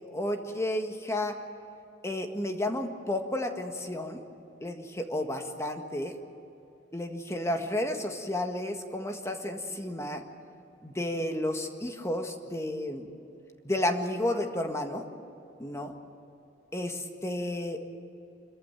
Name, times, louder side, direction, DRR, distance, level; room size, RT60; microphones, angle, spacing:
voice 1, 0.1-1.4 2.0-4.2 4.6-6.1 6.9-10.2 10.8-13.1 13.6-15.0 15.6-15.9 16.7-17.8, left 1 dB, 15° left, 5 dB, 1.7 m, -32 dB
26.0 x 14.5 x 9.0 m, 2.8 s
head